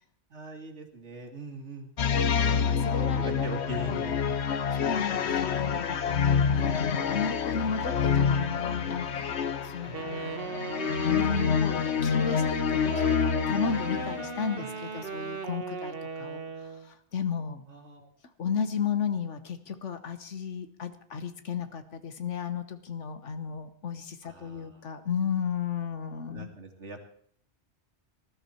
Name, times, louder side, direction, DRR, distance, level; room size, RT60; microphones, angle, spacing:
voice 1, 0.3-1.9 3.1-4.4 4.8-5.7 9.8-10.0 14.5-14.7 17.7-18.1 24.2-24.8 26.3-27.1, right 2 dB, 70° right, 4 dB, 2.6 m, -42 dB
sound 1, 2.0-14.5, left 7 dB, 70° left, 1.1 m, -27 dB
voice 2, 2.3-3.5 3.8-4.2 4.7-17.6 18.4-26.5, left 6 dB, 85° left, 10 dB, 1.5 m, -34 dB
Wind instrument woodwind instrument, 9.9-16.9, right 4 dB, 55° right, 1.3 m, -37 dB
19.5 x 12.5 x 4.4 m, 0.64 s
omnidirectional pair, 1.2 m